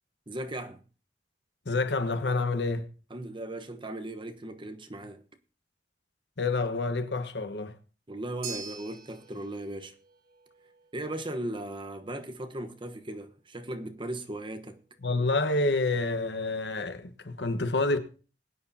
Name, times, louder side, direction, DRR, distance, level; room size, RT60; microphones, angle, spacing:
voice 1, 0.3-0.8 3.1-5.2 8.1-9.9 10.9-14.8, right 1 dB, 30° right, 1.1 m, -37 dB
voice 2, 1.6-2.9 6.4-7.7 15.0-18.0, left 3 dB, 75° left, 1.3 m, -28 dB
sound 1, 8.4-16.8, right 5 dB, 60° right, 3.7 m, -49 dB
21.0 x 9.6 x 2.8 m
head